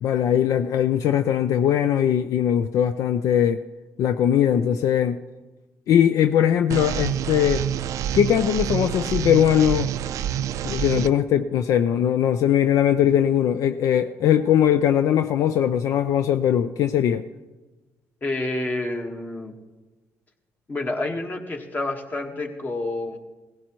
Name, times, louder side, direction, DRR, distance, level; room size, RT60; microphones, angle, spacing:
voice 1, 0.0-3.6 4.0-5.2 5.9-7.6 8.1-9.9 10.6-17.2, left 9 dB, 70° left, 9 dB, 0.4 m, -20 dB
sound 1, 6.7-11.1, right 10 dB, 75° right, 0.4 m, -27 dB
voice 2, 18.2-19.5 20.7-23.2, left 2 dB, 30° left, 3 dB, 1.5 m, -28 dB
17.5 x 15.5 x 3.1 m, 1.2 s
cardioid pair, 100°, 6 cm